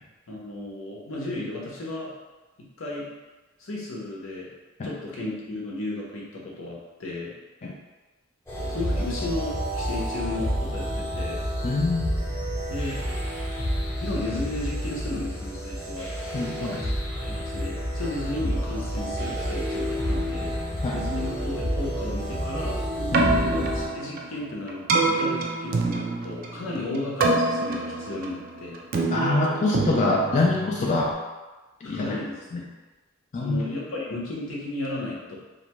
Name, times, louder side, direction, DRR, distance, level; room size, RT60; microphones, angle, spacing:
voice 1, 0.3-2.1 2.8-3.1 3.6-4.5 4.8-7.3 8.7-11.4 12.7-13.0 14.0-16.1 16.6-16.8 17.1-20.5 20.9-22.8 23.5-28.8 31.8-32.3 33.4-35.4, left 2 dB, 85° left, -4 dB, 0.7 m, -34 dB
sound 1, 8.5-23.9, equal, 10° left, 0.7 m, -29 dB
voice 2, 11.6-12.2 16.3-16.8 20.8-21.0 23.1-23.5 29.1-31.1 31.8-32.2 32.5-32.6 33.3-33.6, left 2 dB, 35° left, -3 dB, 0.3 m, -25 dB
Keyboard (musical), 23.0-31.1, right 3 dB, 45° right, 0.3 m, -27 dB
2.5 x 2.1 x 2.9 m, 1.2 s
head